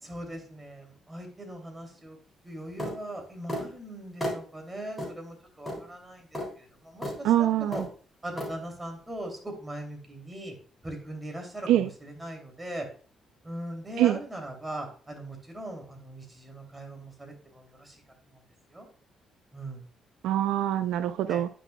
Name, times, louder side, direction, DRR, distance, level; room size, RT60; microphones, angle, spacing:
voice 1, 0.0-2.2 2.4-7.3 7.6-7.8 8.2-10.6 10.8-12.9 13.4-18.0 18.3-18.4 18.7-18.9 19.5-19.9 21.3-21.4, right 1 dB, 15° right, 3 dB, 2.7 m, -40 dB
sound 1, 2.8-3.0 3.5-3.7 4.2-4.4 5.0-5.1 5.7-5.8 6.3-6.5 7.0-7.2 7.7-7.9 8.4-8.5, equal, 10° left, 3.5 m, -33 dB
voice 2, 7.2-7.9 11.7-11.9 14.0-14.2 20.2-21.5, right 12 dB, 90° right, 12 dB, 0.4 m, -24 dB
10.0 x 6.0 x 2.2 m, 0.41 s
cardioid pair, 90°, 0 cm